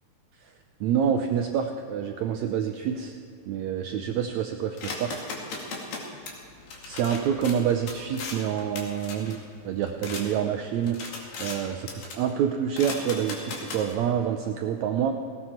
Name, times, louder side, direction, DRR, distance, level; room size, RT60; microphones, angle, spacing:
voice 1, 0.8-3.2 3.5-5.1 6.8-9.4 9.6-11.0 11.4-15.1, right 8 dB, 85° right, 5 dB, 1.6 m, -27 dB
sound 1, 4.8-10.2 10.7-11.6 11.9-12.3 12.7-13.9, left 3 dB, 70° left, 3.7 m, -38 dB
19.0 x 17.0 x 4.4 m, 2.5 s
omnidirectional pair, 4.1 m